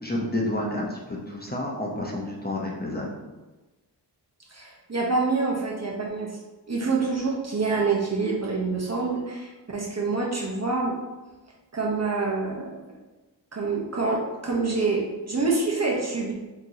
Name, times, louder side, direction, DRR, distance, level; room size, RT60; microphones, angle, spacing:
voice 1, 0.0-3.2, left 1 dB, 20° left, -2 dB, 0.9 m, -30 dB
voice 2, 4.5-6.3 6.7-10.9 11.7-12.7 13.5-16.3, right 3 dB, 40° right, -2 dB, 1.0 m, -26 dB
5.9 x 3.1 x 2.9 m, 1.2 s
wide cardioid pair, 65°, 42 cm